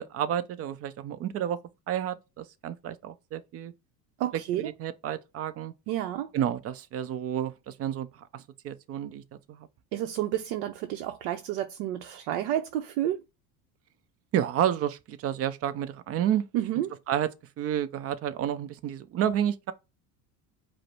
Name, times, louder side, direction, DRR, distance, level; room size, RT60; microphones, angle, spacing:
voice 1, 0.0-1.6 1.9-3.7 4.8-5.7 6.3-8.1 8.3-9.2 9.5-9.7 14.3-16.4 17.1-17.3 17.6-19.7, right 10 dB, 35° right, 0.5 m, -30 dB
voice 2, 4.2-4.7 5.9-6.3 9.9-13.2 16.5-16.9, right 12 dB, 70° right, 0.7 m, -30 dB
4.8 x 2.1 x 4.5 m
supercardioid pair, 120°, 47 cm